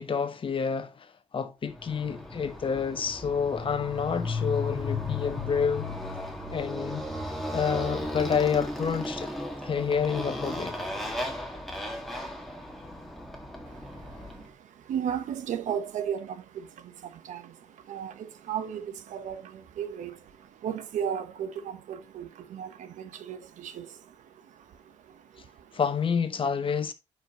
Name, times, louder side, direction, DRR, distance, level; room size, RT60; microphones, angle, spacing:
voice 1, 0.0-5.9 6.5-7.1 7.5-9.3 9.6-10.7 25.7-26.9, left 6 dB, 45° left, 1.1 m, -29 dB
Motorcycle, 1.8-14.5, left 2 dB, ahead, 1.9 m, -35 dB
voice 2, 13.7-25.8, right 8 dB, 80° right, 1.1 m, -36 dB
9.1 x 5.0 x 3.0 m
cardioid pair, 85°, 13 cm